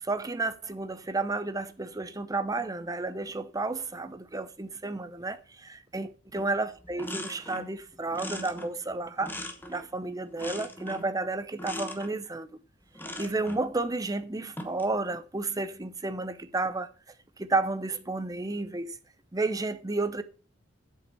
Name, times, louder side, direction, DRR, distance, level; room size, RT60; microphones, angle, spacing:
voice 1, 0.0-9.4 9.7-12.5 13.2-16.9 17.4-19.0 19.3-20.2, right 3 dB, 20° right, 0.7 m, -32 dB
sound 1, 6.4-6.5 6.8-7.7 8.1-10.0 10.4-11.1 11.6-12.1 12.9-13.6 14.4-14.9, left 1 dB, 10° left, 1.1 m, -40 dB
7.9 x 5.5 x 7.0 m
head